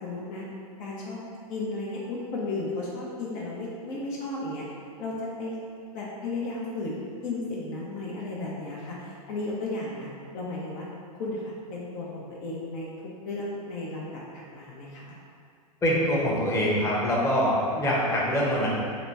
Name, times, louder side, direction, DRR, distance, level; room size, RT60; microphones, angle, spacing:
voice 1, 0.0-0.4 0.8-1.2 1.5-4.6 5.0-5.6 5.9-10.9 11.1-12.9 13.2-14.2 14.5-15.2, left 2 dB, 45° left, -5 dB, 0.7 m, -34 dB
voice 2, 15.8-18.7, equal, 15° left, -5 dB, 0.9 m, -24 dB
3.9 x 2.2 x 4.5 m, 2.3 s
hypercardioid pair, 110°, 19 cm